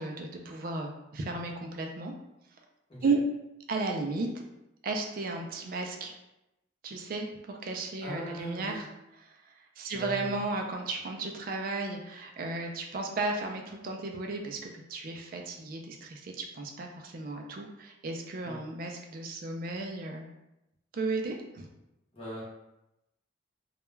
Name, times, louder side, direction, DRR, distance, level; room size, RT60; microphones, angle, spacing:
voice 1, 0.0-2.1 3.0-3.2 3.7-4.4 4.8-6.1 6.8-8.9 9.3-9.4 9.8-20.3 20.9-21.7, right 3 dB, 45° right, 2 dB, 0.3 m, -34 dB
voice 2, 8.0-8.8 9.9-10.4 18.4-18.6 22.1-22.4, equal, 30° left, -6 dB, 0.8 m, -40 dB
2.2 x 2.1 x 3.0 m, 0.91 s
head